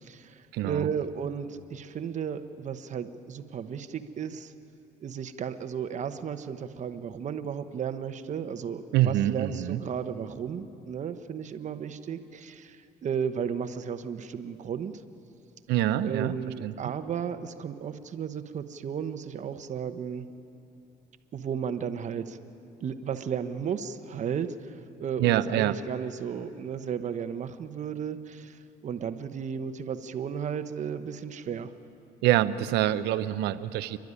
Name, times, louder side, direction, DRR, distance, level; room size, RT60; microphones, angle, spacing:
voice 1, 0.0-4.5 5.0-14.9 16.0-20.3 21.3-22.4 22.8-24.7 25.0-31.7, right 7 dB, 45° right, 10 dB, 1.0 m, -34 dB
voice 2, 0.5-0.9 8.9-9.8 15.7-16.3 16.6-16.9 25.2-25.8 32.2-34.0, right 13 dB, 85° right, 13 dB, 0.7 m, -25 dB
28.0 x 12.0 x 9.7 m, 2.7 s
cardioid pair, 110°, 17 cm